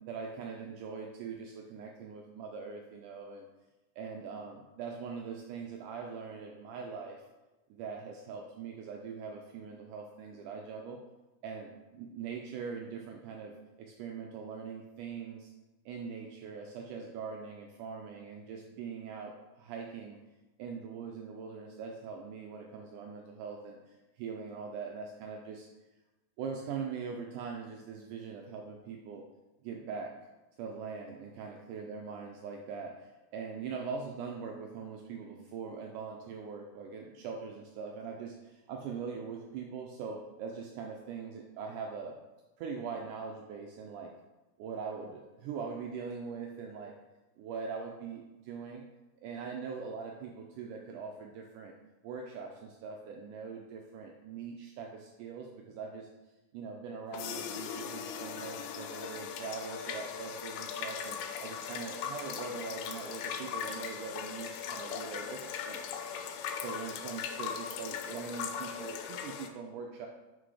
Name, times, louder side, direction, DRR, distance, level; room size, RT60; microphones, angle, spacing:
voice 1, 0.0-3.5 4.0-7.2 7.7-11.0 11.4-13.5 13.8-15.5 15.9-20.2 20.6-25.7 26.4-29.2 29.6-30.1 30.6-42.2 42.6-44.1 44.6-46.9 47.4-48.9 49.2-51.7 52.0-56.1 56.5-66.0 66.6-70.1, right 5 dB, 85° right, 1 dB, 1.8 m, -42 dB
sound 1, 57.1-69.5, left 7 dB, 85° left, 2.5 m, -39 dB
5.9 x 5.5 x 4.8 m, 1.1 s
omnidirectional pair, 4.3 m